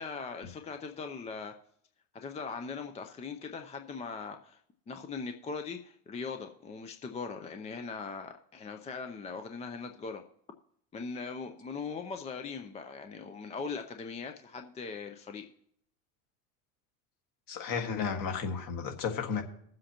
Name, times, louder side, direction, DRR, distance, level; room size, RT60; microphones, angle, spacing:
voice 1, 0.0-1.5 2.1-4.6 4.9-10.2 10.9-15.5, left 5 dB, 15° left, 6 dB, 0.5 m, -40 dB
voice 2, 17.5-19.4, left 6 dB, 45° left, 5 dB, 1.7 m, -33 dB
20.5 x 7.6 x 2.9 m, 0.68 s
supercardioid pair, 110°, 46 cm